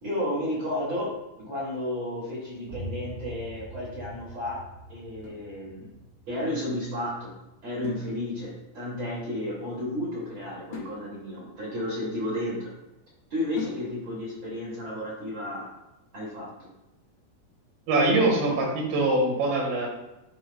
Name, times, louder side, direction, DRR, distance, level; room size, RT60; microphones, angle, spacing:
voice 1, 0.0-1.1 1.4-4.6 4.9-5.9 6.3-7.3 7.6-12.7 13.3-15.7 16.1-16.7, left 1 dB, 35° right, -6 dB, 2.7 m, -32 dB
sound 1, 2.7-8.3, equal, 70° right, 2.2 m, -43 dB
sound 2, 5.2-6.2 7.8-8.7 10.7-12.7 13.6-14.3, left 5 dB, 80° left, 3.8 m, -43 dB
voice 2, 17.9-19.9, right 2 dB, 90° right, -1 dB, 4.0 m, -23 dB
11.5 x 5.4 x 2.3 m, 0.96 s
omnidirectional pair, 4.9 m